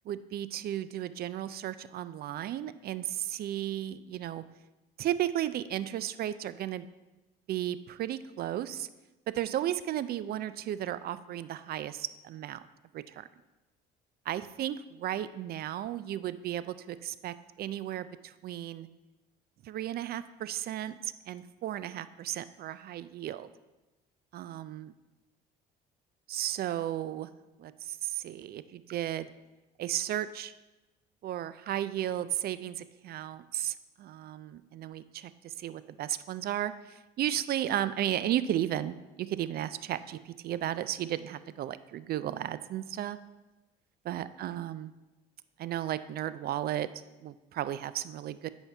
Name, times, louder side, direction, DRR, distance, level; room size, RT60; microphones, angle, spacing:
voice 1, 0.1-4.4 5.0-6.9 7.5-8.9 9.3-12.7 12.9-13.3 14.3-18.9 19.6-23.5 24.3-24.9 26.3-27.3 27.6-29.3 29.8-30.5 31.2-43.2 44.0-44.9 45.6-46.9 47.2-48.5, right 12 dB, 50° right, 15 dB, 0.4 m, -34 dB
9.0 x 4.5 x 3.4 m, 1.1 s
hypercardioid pair, 65°, 21 cm